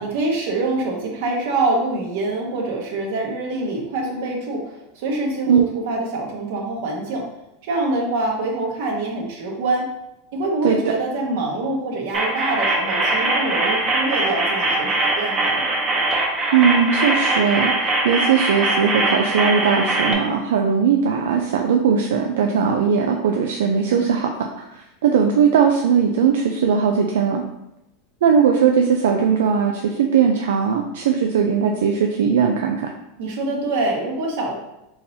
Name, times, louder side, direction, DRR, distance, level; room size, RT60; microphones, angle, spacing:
voice 1, 0.0-7.3 7.6-9.9 10.3-15.6 33.2-34.5, right 2 dB, 70° right, 0 dB, 1.1 m, -25 dB
sound 1, 12.1-20.1, right 2 dB, 25° right, 0.8 m, -21 dB
voice 2, 16.5-27.4 28.2-32.9, right 6 dB, 90° right, 3 dB, 0.4 m, -19 dB
4.1 x 3.8 x 2.7 m, 0.88 s
supercardioid pair, 140°, 0 cm